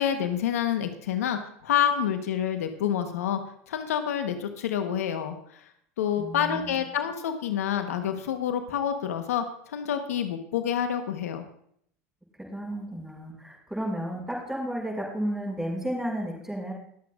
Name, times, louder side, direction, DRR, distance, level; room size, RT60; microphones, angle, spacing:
voice 1, 0.0-3.4 3.7-5.7 6.0-11.5, left 9 dB, 90° left, 7 dB, 1.1 m, -28 dB
voice 2, 6.2-6.8 12.5-16.7, equal, 5° right, -1 dB, 5.6 m, -32 dB
21.0 x 8.1 x 2.5 m, 0.68 s
hypercardioid pair, 95°, 8 cm